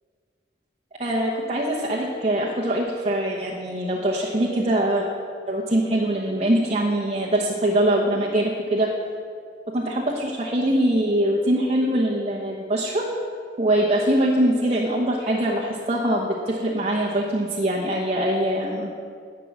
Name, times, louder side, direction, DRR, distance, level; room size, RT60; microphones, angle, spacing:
voice 1, 1.0-5.0 5.5-8.9 9.7-13.0 13.6-18.9, right 1 dB, 35° right, -3 dB, 0.9 m, -23 dB
10.5 x 6.0 x 8.3 m, 2.2 s
head